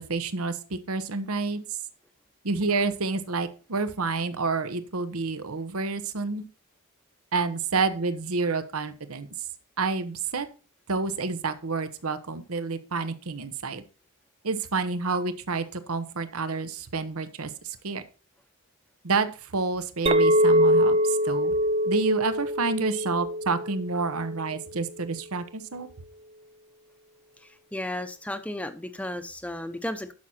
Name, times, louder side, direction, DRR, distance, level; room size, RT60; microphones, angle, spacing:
voice 1, 0.0-1.6 2.4-6.4 7.3-9.3 9.8-10.5 10.9-13.8 14.4-18.0 19.0-19.3 19.5-21.5 21.8-25.9, right 4 dB, 75° right, 1.0 m, -29 dB
Chink clink, 20.1-24.5, equal, 25° right, 0.4 m, -23 dB
voice 2, 27.4-30.1, left 1 dB, 5° left, 0.8 m, -34 dB
11.5 x 6.3 x 4.3 m
head